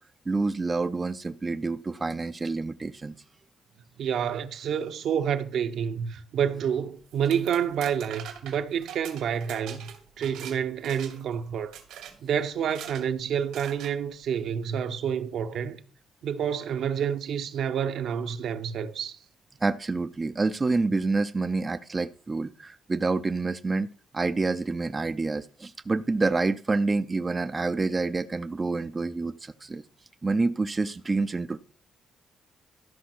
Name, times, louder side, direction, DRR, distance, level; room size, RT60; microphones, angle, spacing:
voice 1, 0.3-3.2 19.6-23.9 24.1-29.8 30.2-31.6, right 3 dB, 25° right, 0.5 m, -27 dB
voice 2, 4.0-9.9 10.2-11.7 12.2-15.8 16.2-19.2, right 8 dB, 70° right, 1.1 m, -28 dB
sound 1, 7.1-10.6 10.8-11.3 11.7-12.1 12.6-13.0 13.5-13.9, right 9 dB, 90° right, 2.5 m, -42 dB
13.0 x 5.4 x 6.1 m
cardioid pair, 90°, 0 cm